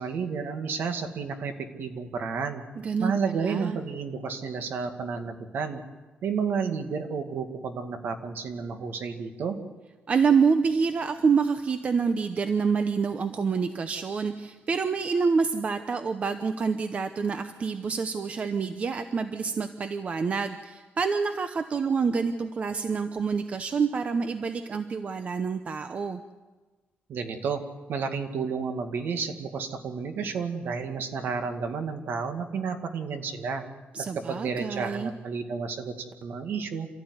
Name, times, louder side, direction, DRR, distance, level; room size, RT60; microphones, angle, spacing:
voice 1, 0.0-2.6 3.0-5.8 6.2-9.6 27.1-27.6 27.9-33.6 34.0-36.9, right 5 dB, 60° right, 6 dB, 2.1 m, -31 dB
voice 2, 2.8-3.1 3.4-3.8 10.1-26.2 33.9-35.1, right 5 dB, 35° right, 9 dB, 0.8 m, -27 dB
27.5 x 14.0 x 9.7 m, 1.3 s
wide cardioid pair, 175°, 4 cm